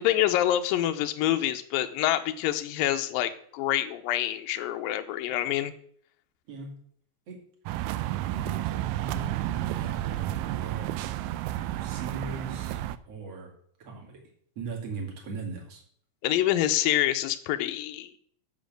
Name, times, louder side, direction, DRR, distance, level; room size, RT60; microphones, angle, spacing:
voice 1, 0.0-5.7 16.2-18.2, left 13 dB, 80° left, 9 dB, 2.4 m, -26 dB
voice 2, 6.5-6.8 7.3-7.4 8.3-11.2 11.8-12.8 13.1-13.5 13.8-14.2 14.6-15.8, right 4 dB, 45° right, -1 dB, 3.2 m, -39 dB
sound 1, 7.7-13.0, right 14 dB, 85° right, 1.8 m, -31 dB
7.5 x 7.2 x 7.6 m, 0.62 s
omnidirectional pair, 4.3 m